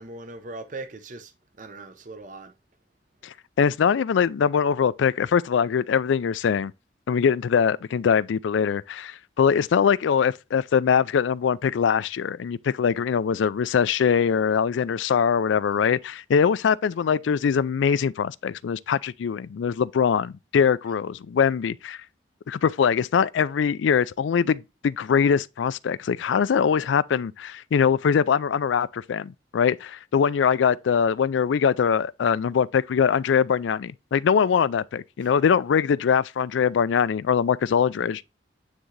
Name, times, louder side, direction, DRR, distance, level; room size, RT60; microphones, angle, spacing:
voice 1, 0.0-1.3 1.6-2.5 15.7-15.9 35.2-35.3, right 2 dB, 45° right, 0.7 m, -40 dB
voice 2, 3.2-6.7 7.1-22.0 22.5-38.2, left 7 dB, 90° left, 0.4 m, -22 dB
9.3 x 3.7 x 3.2 m
head